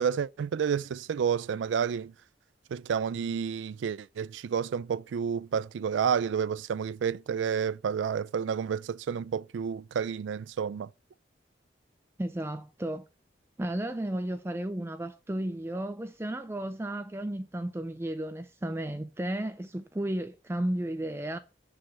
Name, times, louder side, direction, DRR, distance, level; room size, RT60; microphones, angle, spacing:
voice 1, 0.0-2.1 2.7-10.9, right 7 dB, 90° right, 0.3 m, -30 dB
voice 2, 12.2-13.1 13.6-21.4, right 1 dB, 15° right, 0.4 m, -33 dB
7.4 x 4.9 x 7.0 m
head